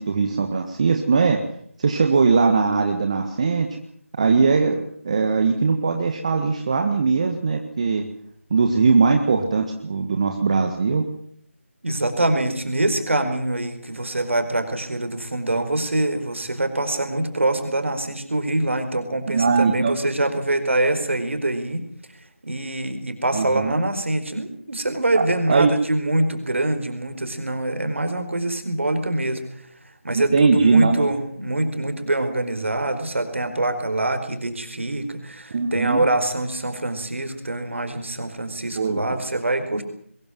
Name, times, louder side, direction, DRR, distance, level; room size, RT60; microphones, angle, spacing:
voice 1, 0.0-1.4 1.8-3.7 4.2-8.0 8.5-11.0 19.3-20.0 23.3-23.7 25.1-25.7 30.3-31.1 35.5-36.1 38.8-39.2, right 4 dB, 30° right, 5 dB, 1.6 m, -20 dB
voice 2, 11.8-21.9 22.4-29.6 30.0-39.8, right 2 dB, 60° right, 8 dB, 4.6 m, -24 dB
22.5 x 14.0 x 9.7 m, 0.63 s
figure-of-eight pair, 165°, 7 cm